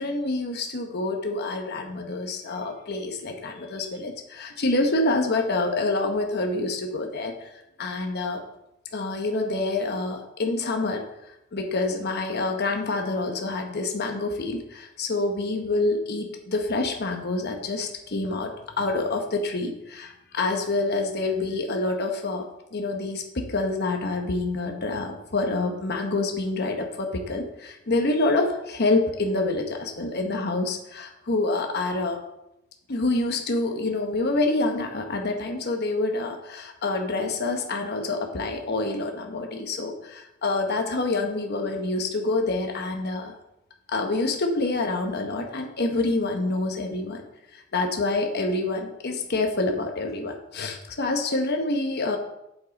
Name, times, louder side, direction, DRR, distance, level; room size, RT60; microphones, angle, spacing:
voice 1, 0.0-7.5 7.8-8.4 8.9-11.0 11.5-18.5 18.8-32.2 32.9-43.3 43.9-47.2 47.5-52.2, left 2 dB, 55° left, 3 dB, 1.0 m, -27 dB
8.4 x 7.4 x 4.1 m, 0.86 s
head